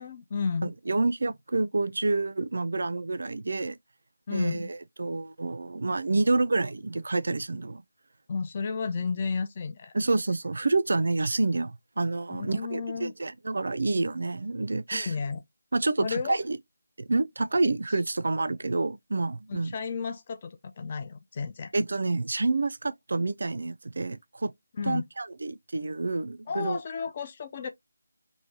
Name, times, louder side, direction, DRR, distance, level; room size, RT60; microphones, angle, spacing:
voice 1, 0.0-0.7 4.3-4.6 8.3-9.9 12.3-13.1 14.9-15.4 16.0-16.4 19.5-21.7 24.8-25.0 26.5-27.7, left 5 dB, 30° left, 0.3 m, -32 dB
voice 2, 0.6-3.8 4.3-7.8 9.9-15.1 15.7-16.6 17.1-19.7 21.7-24.5 24.9-26.8, right 3 dB, 60° right, 0.3 m, -28 dB
3.1 x 2.6 x 2.7 m
figure-of-eight pair, 160°, 0 cm